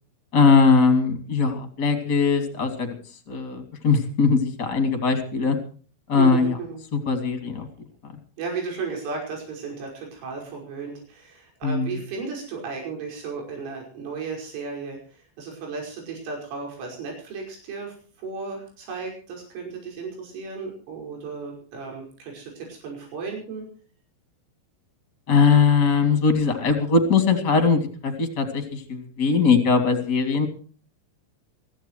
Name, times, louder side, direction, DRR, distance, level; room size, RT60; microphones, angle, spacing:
voice 1, 0.3-2.9 3.3-5.6 6.1-6.5 6.9-7.7 11.6-12.0 25.3-30.5, left 5 dB, 30° left, 8 dB, 2.5 m, -20 dB
voice 2, 6.2-6.8 8.4-23.7, right 4 dB, 85° right, 0 dB, 8.0 m, -34 dB
24.5 x 15.5 x 3.1 m, 0.41 s
omnidirectional pair, 5.5 m